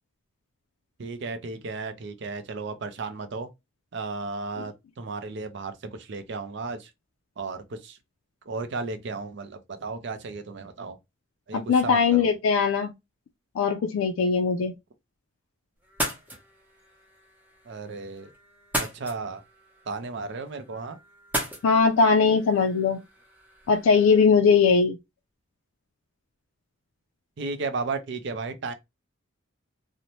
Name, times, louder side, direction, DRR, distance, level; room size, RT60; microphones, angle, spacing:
voice 1, 1.0-3.5 3.9-6.9 7.4-8.0 8.5-11.0 11.5-12.3 17.7-18.3 18.8-19.4 19.9-21.0 27.4-28.7, right 3 dB, 60° right, 0.5 m, -34 dB
voice 2, 11.5-12.9 13.6-14.7 21.6-23.0 23.7-25.0, left 5 dB, 85° left, 0.4 m, -20 dB
sound 1, 15.8-24.2, equal, 10° right, 0.7 m, -37 dB
2.6 x 2.1 x 3.0 m
head